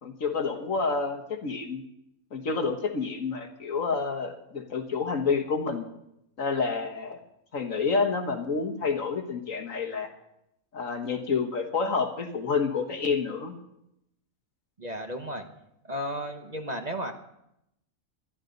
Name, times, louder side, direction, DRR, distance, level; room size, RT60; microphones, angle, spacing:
voice 1, 0.0-1.8 2.3-5.9 6.4-7.2 7.5-10.1 10.7-13.6, left 4 dB, 65° left, 4 dB, 1.8 m, -29 dB
voice 2, 14.8-15.5 15.8-17.1, equal, 30° right, 5 dB, 1.1 m, -33 dB
20.5 x 12.5 x 4.0 m, 0.82 s
omnidirectional pair, 1.5 m